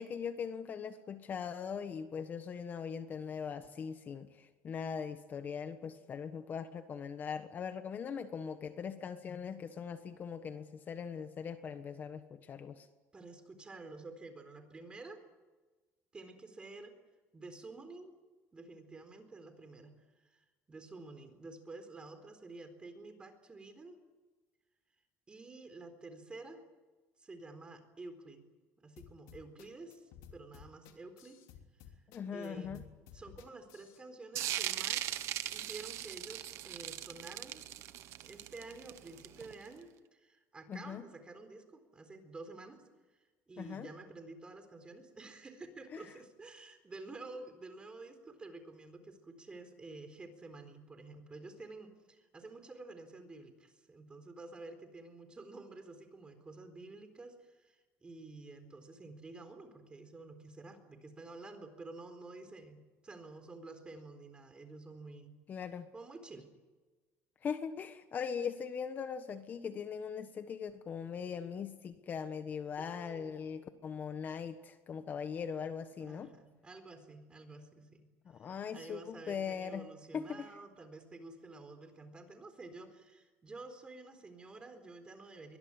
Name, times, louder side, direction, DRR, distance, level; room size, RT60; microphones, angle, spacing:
voice 1, 0.0-12.9 32.1-32.8 40.7-41.0 43.6-43.9 45.9-46.0 65.5-65.9 67.4-76.3 78.2-79.9 80.1-80.5, left 6 dB, 35° left, 10 dB, 1.3 m, -40 dB
voice 2, 13.1-15.2 16.1-16.9 17.3-18.1 18.5-24.0 25.3-26.6 27.2-28.4 28.8-31.4 31.9-32.0 32.3-32.9 33.1-37.7 38.2-62.8 63.0-65.3 65.9-66.5 72.8-73.3 76.0-78.1 78.4-85.6, right 3 dB, 20° right, 8 dB, 4.1 m, -50 dB
sound 1, 29.0-34.0, left 9 dB, 85° left, 3.2 m, -55 dB
sound 2, 34.4-39.7, right 13 dB, 65° right, 1.4 m, -39 dB
23.5 x 20.5 x 10.0 m, 1.3 s
cardioid pair, 140°, 5 cm